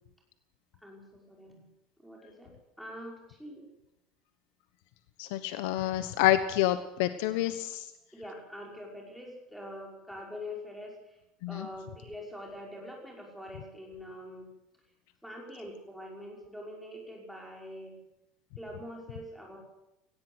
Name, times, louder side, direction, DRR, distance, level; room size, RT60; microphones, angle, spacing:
voice 1, 0.8-1.7 2.0-2.5 2.8-3.7 6.0-6.3 8.1-11.2 11.5-14.5 15.2-17.9 18.6-19.6, left 1 dB, ahead, -1 dB, 5.6 m, -44 dB
voice 2, 5.2-7.9 11.4-11.7, left 13 dB, 75° left, 11 dB, 1.2 m, -28 dB
18.5 x 18.0 x 8.0 m, 0.88 s
cardioid pair, 165°, 0 cm